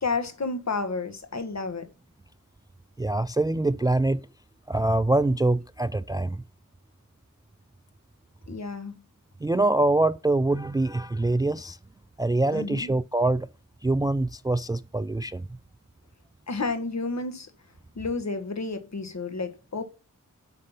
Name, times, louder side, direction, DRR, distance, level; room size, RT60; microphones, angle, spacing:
voice 1, 0.0-1.9 8.5-9.0 12.5-12.9 16.5-17.5 18.0-19.8, left 3 dB, 50° left, 1.5 m, -31 dB
voice 2, 3.0-4.3 4.7-6.4 9.4-11.8 12.2-13.5 13.8-15.4, right 2 dB, 10° right, 0.3 m, -24 dB
6.4 x 5.8 x 5.5 m
cardioid pair, 55°, 34 cm